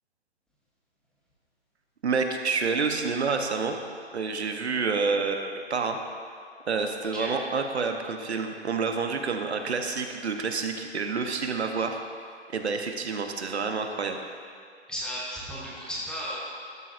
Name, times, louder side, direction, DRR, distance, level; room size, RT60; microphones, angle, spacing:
voice 1, 2.0-3.7 4.1-6.0 6.7-12.0 12.5-14.2, right 4 dB, 70° right, 5 dB, 1.0 m, -28 dB
voice 2, 14.9-16.4, equal, ahead, -7 dB, 1.0 m, -34 dB
12.5 x 11.0 x 2.5 m, 2.2 s
figure-of-eight pair, 140°, 34 cm